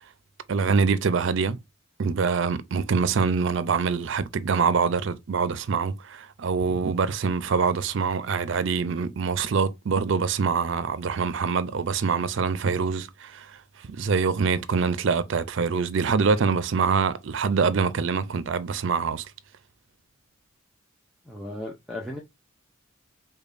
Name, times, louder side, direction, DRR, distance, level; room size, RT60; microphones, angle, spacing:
voice 1, 0.5-1.6 2.0-13.5 13.9-19.3, right 5 dB, 65° right, 0.4 m, -25 dB
voice 2, 21.2-22.2, left 1 dB, ahead, 0.5 m, -35 dB
5.1 x 2.2 x 2.5 m
head